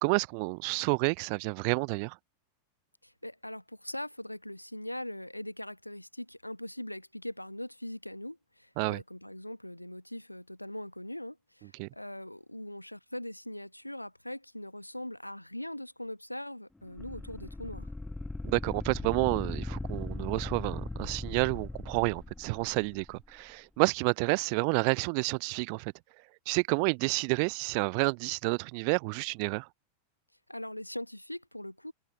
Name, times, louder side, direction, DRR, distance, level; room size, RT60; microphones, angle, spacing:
voice 1, 0.0-2.2 8.8-9.0 11.8-11.9 18.4-25.9 26.5-29.7, right 40 dB or more, 45° right, 0.6 m, -29 dB
voice 2, 3.0-17.9 30.5-31.9, left 1 dB, 90° left, 1.1 m, -41 dB
sound 1, 17.0-23.1, left 2 dB, 5° left, 1.5 m, -38 dB
figure-of-eight pair, 90°, 0 cm